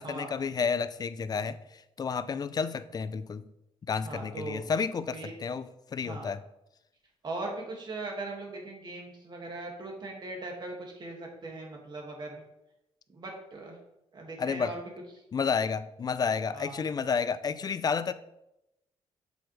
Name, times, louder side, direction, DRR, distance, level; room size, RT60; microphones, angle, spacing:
voice 1, 0.0-1.6 2.0-3.5 3.9-6.4 14.4-14.7 15.3-18.1, left 5 dB, 35° left, 14 dB, 0.4 m, -31 dB
voice 2, 4.0-4.6 5.1-5.3 6.0-6.3 7.2-12.4 13.1-13.8 14.1-14.9 16.5-16.8, right 2 dB, 35° right, 0 dB, 2.1 m, -39 dB
7.6 x 7.1 x 3.3 m, 0.87 s
cardioid pair, 120°, 12 cm